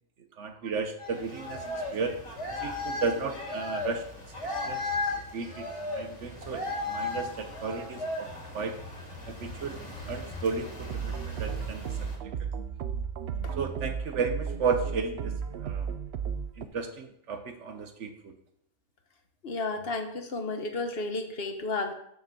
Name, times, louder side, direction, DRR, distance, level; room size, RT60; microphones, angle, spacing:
voice 1, 0.4-2.2 2.6-4.0 4.6-4.8 5.3-5.7 5.9-8.8 9.3-11.9 13.6-15.9 16.6-18.3, right 5 dB, 85° right, 6 dB, 1.3 m, -34 dB
sound 1, 1.0-12.2, left 2 dB, 80° left, 3.0 m, -36 dB
sound 2, 10.8-16.7, right 7 dB, 65° right, 0.9 m, -34 dB
voice 2, 19.4-21.9, left 3 dB, 55° left, 6 dB, 1.4 m, -32 dB
7.7 x 6.6 x 6.9 m, 0.72 s
omnidirectional pair, 1.2 m